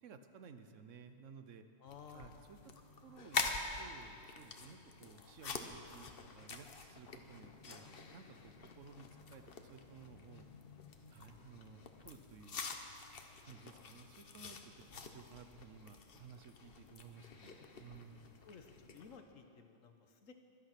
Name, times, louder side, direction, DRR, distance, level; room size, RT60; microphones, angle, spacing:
voice 1, 0.0-1.6 2.1-2.6 3.0-3.5 3.8-6.1 6.3-7.9 8.1-10.5 11.1-12.6 13.4-18.3, right 6 dB, 75° right, 8 dB, 1.2 m, -56 dB
voice 2, 1.8-2.5 18.4-20.3, left 6 dB, 85° left, 6 dB, 1.4 m, -56 dB
sound 1, 1.9-19.2, left 4 dB, 50° left, 1.1 m, -47 dB
23.5 x 8.7 x 5.9 m, 2.6 s
omnidirectional pair, 1.3 m